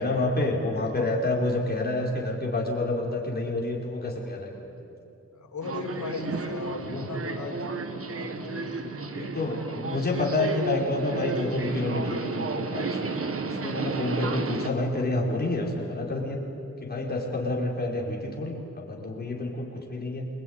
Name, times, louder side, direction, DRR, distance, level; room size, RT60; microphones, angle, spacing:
voice 1, 0.0-4.5 4.8-4.9 6.8-7.0 9.1-16.4 16.8-20.3, left 2 dB, 30° left, -1 dB, 5.0 m, -29 dB
voice 2, 5.3-8.8, left 4 dB, 70° left, 2 dB, 4.3 m, -37 dB
Subway metro underground, 5.6-14.7, right 3 dB, 50° right, 1.7 m, -32 dB
28.0 x 22.0 x 9.7 m, 2.9 s
wide cardioid pair, 150°, 29 cm